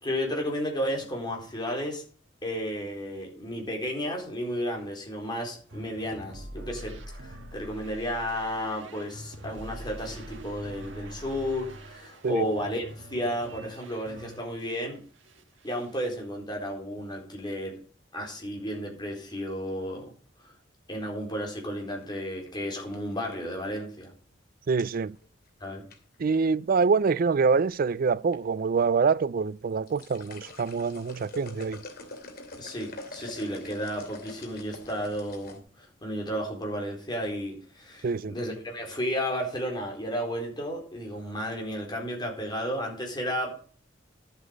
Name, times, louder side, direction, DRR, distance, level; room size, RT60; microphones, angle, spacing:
voice 1, 0.0-2.0 2.4-15.0 15.6-17.7 18.1-20.1 20.4-20.5 20.9-24.1 25.6-25.8 32.6-43.5, equal, 25° left, 4.2 m, -33 dB
sound 1, 5.7-14.9 15.2-16.0, right 1 dB, 85° right, 1.7 m, -44 dB
sound 2, 21.5-23.6 25.1-25.5 25.9-26.3 27.3-27.8 28.1-28.3 28.8-28.9 29.6-35.6, left 2 dB, 55° left, 2.7 m, -45 dB
voice 2, 24.7-25.2 26.2-31.8 38.0-38.3, right 5 dB, 50° right, 0.4 m, -25 dB
12.0 x 8.0 x 5.2 m
head